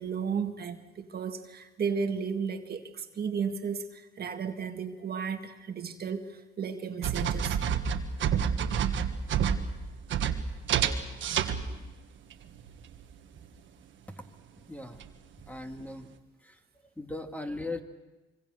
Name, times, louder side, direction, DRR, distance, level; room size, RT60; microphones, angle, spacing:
voice 1, 0.0-7.6 10.1-10.3, right 6 dB, 50° right, 6 dB, 1.8 m, -34 dB
sound 1, 7.0-11.9 12.3-13.1 15.0-15.1 15.4-15.5, right 7 dB, 75° right, 1.6 m, -29 dB
voice 2, 15.5-16.1 17.0-17.8, left 2 dB, 5° left, 4 dB, 2.3 m, -37 dB
25.5 x 24.5 x 6.5 m, 1.1 s
cardioid pair, 90°, 20 cm